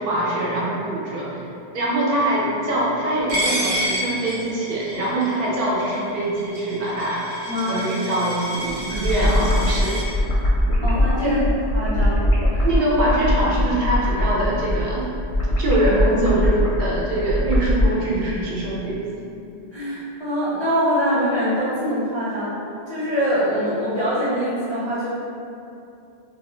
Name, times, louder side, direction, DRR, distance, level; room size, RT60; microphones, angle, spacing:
voice 1, 0.0-1.4 1.7-7.2 7.7-10.1 11.2-11.4 12.6-15.1 15.6-19.2, right 1 dB, 65° right, -6 dB, 0.8 m, -23 dB
Coin (dropping), 3.3-10.0, equal, 30° right, 0.6 m, -29 dB
voice 2, 7.5-7.8 8.9-9.0 10.8-11.4 11.7-12.2 12.5-12.7 19.7-22.5 22.9-25.1, equal, 40° left, -12 dB, 0.4 m, -24 dB
sound 1, 8.7-17.9, left 1 dB, 85° left, 0.9 m, -21 dB
2.6 x 2.1 x 3.0 m, 2.6 s
omnidirectional pair, 1.1 m